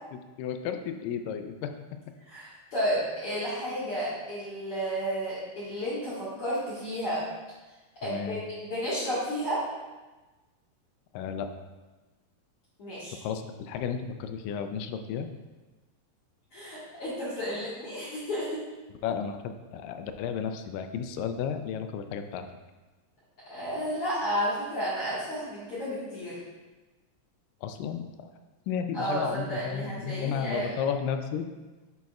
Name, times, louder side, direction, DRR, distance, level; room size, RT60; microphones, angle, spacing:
voice 1, 0.4-1.7 8.0-8.4 11.1-11.5 13.2-15.3 19.0-22.4 27.6-28.3 28.7-31.5, left 7 dB, 85° left, 7 dB, 2.2 m, -33 dB
voice 2, 2.3-7.2 8.0-9.6 12.8-13.2 16.5-18.6 23.5-26.4 28.9-30.7, equal, 50° left, -12 dB, 2.3 m, -32 dB
10.5 x 4.1 x 2.4 m, 1.2 s
omnidirectional pair, 3.8 m